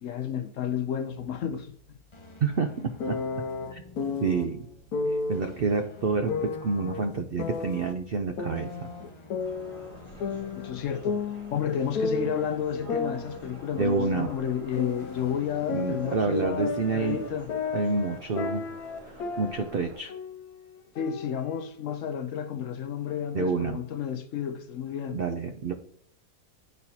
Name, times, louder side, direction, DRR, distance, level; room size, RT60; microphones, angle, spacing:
voice 1, 0.0-2.0 10.6-11.2 11.5-17.5 21.0-25.2, left 8 dB, 65° left, 0.9 m, -31 dB
sound 1, 1.1-17.5, left 3 dB, 30° left, 0.6 m, -50 dB
voice 2, 2.4-2.7 3.1-3.2 3.7-3.8 4.2-4.7 5.1-8.9 13.7-14.3 15.7-17.2 17.7-18.7 19.1-20.1 23.3-23.8 25.1-25.7, right 4 dB, 70° right, 0.5 m, -28 dB
sound 2, 3.0-4.4 4.9-5.4 6.3-7.9 8.4-9.9 10.2-12.5 12.9-15.3 15.7-19.8 20.1-20.5 21.0-22.0, left 4 dB, 85° left, 1.2 m, -33 dB
sound 3, 9.4-20.0, equal, 20° right, 2.9 m, -49 dB
11.0 x 4.1 x 2.8 m
omnidirectional pair, 1.6 m